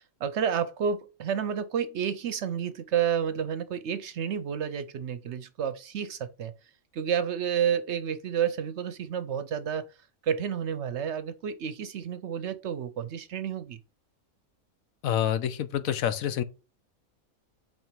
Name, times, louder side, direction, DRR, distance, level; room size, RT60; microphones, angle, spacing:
voice 1, 0.0-6.5 6.9-9.9 10.2-13.8, right 8 dB, 65° right, 0.8 m, -30 dB
voice 2, 15.0-16.4, left 10 dB, 80° left, 1.1 m, -27 dB
5.4 x 3.9 x 4.4 m
omnidirectional pair, 1.5 m